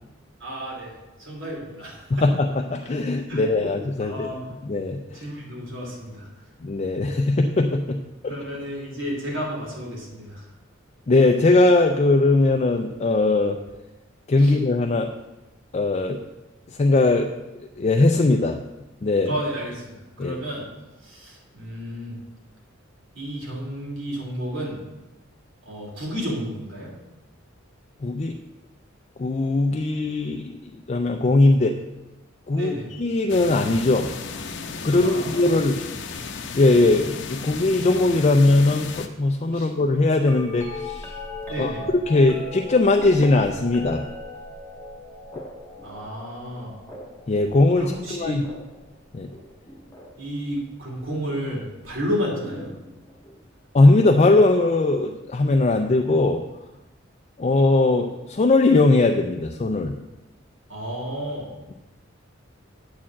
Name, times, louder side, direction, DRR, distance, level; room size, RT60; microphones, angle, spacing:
voice 1, 0.4-2.3 3.3-3.6 4.0-4.5 5.1-6.5 8.3-10.5 14.4-14.6 19.3-20.7 21.0-22.2 23.1-24.8 25.6-26.9 32.5-32.9 34.9-35.5 39.5-39.7 41.5-41.9 45.8-46.7 47.7-48.4 50.2-52.7 60.7-61.5, equal, 75° right, -3 dB, 2.8 m, -32 dB
voice 2, 2.2-4.3 4.7-5.2 6.6-8.3 11.1-13.6 14.3-15.1 15.7-16.2 16.8-17.3 17.8-18.6 19.0-19.3 20.2-20.4 28.0-28.4 29.2-30.5 30.9-31.8 32.5-32.7 33.0-34.1 34.8-35.8 36.5-41.2 41.6-41.7 42.1-44.0 45.3-45.4 47.3-48.4 49.1-49.3 53.7-56.4 57.4-59.9, left 2 dB, 35° left, 4 dB, 0.4 m, -20 dB
sound 1, 33.3-39.1, left 4 dB, 60° left, 0.7 m, -34 dB
sound 2, 40.2-50.3 51.3-51.7 52.4-53.4 55.2-55.3, left 2 dB, 10° left, 1.2 m, -39 dB
8.5 x 4.5 x 7.4 m, 1.0 s
head